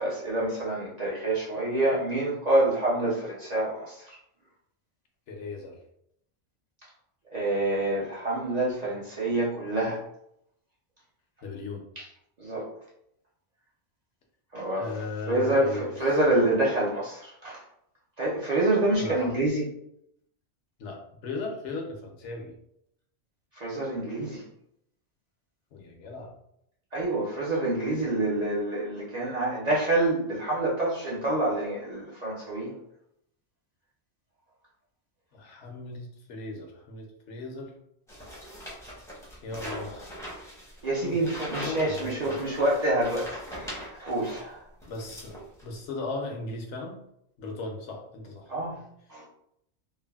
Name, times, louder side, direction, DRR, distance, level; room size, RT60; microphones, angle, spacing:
voice 1, 0.0-4.1 7.3-10.0 12.0-12.1 12.4-12.7 14.5-14.9 15.3-17.6 18.2-19.7 23.6-24.4 26.9-32.8 40.8-44.6 48.5-48.8 49.1-49.2, right 1 dB, 45° right, -5 dB, 0.6 m, -27 dB
voice 2, 5.3-5.8 11.4-11.8 14.7-16.5 19.0-19.3 20.8-22.5 25.7-26.3 35.3-37.7 39.4-40.3 41.0-41.2 41.6-42.4 44.9-47.0 47.4-48.5, left 3 dB, 75° left, 1 dB, 1.0 m, -37 dB
sound 1, 38.1-44.5 44.8-45.7, equal, 5° left, 0.5 m, -41 dB
3.3 x 2.2 x 2.2 m, 0.75 s
omnidirectional pair, 1.2 m